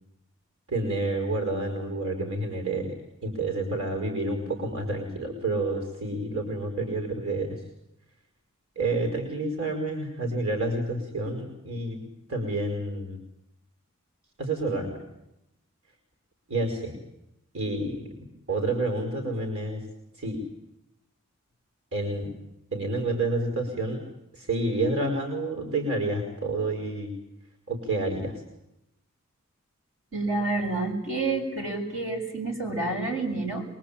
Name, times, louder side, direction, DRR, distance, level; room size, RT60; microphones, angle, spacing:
voice 1, 0.7-3.0 3.2-7.6 8.8-13.2 14.4-15.0 16.5-17.0 17.5-18.1 18.5-19.8 20.2-20.4 21.9-22.3 22.7-24.0 24.3-27.1 27.7-28.4, right 2 dB, 85° right, 3 dB, 5.2 m, -29 dB
voice 2, 30.1-33.6, right 3 dB, 65° right, 2 dB, 7.2 m, -29 dB
24.0 x 23.5 x 8.8 m, 0.85 s
head